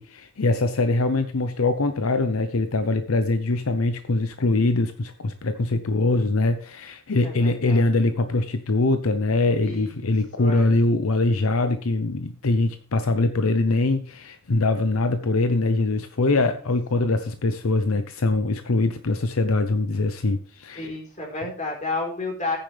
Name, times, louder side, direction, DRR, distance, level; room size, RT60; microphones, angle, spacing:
voice 1, 0.0-20.9, left 2 dB, 80° left, 0.8 m, -23 dB
voice 2, 7.2-7.8 9.6-10.8 16.3-16.5 16.9-17.1 20.8-22.6, left 2 dB, 35° left, 4.1 m, -32 dB
14.0 x 9.6 x 3.4 m
head